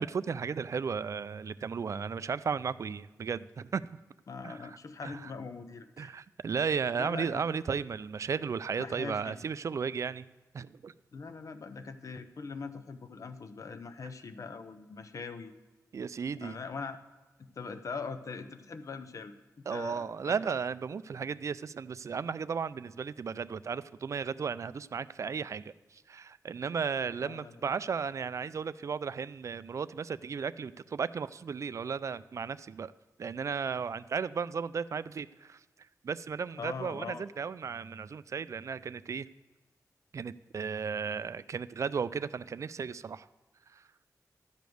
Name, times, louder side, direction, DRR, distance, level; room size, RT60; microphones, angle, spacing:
voice 1, 0.0-4.0 4.4-4.8 5.0-5.3 6.0-10.3 10.5-10.9 15.9-16.6 19.7-32.9 33.2-35.6 36.0-39.3 40.1-43.3 43.7-43.8, right 6 dB, 50° right, 15 dB, 0.3 m, -35 dB
voice 2, 4.3-6.2 6.9-7.3 8.8-9.3 11.1-15.5 16.4-17.0 17.6-19.3 19.7-20.3 27.2-27.5 36.6-37.2, left 4 dB, 55° left, 9 dB, 0.7 m, -41 dB
12.5 x 5.2 x 7.7 m, 1.2 s
wide cardioid pair, 120°, 6 cm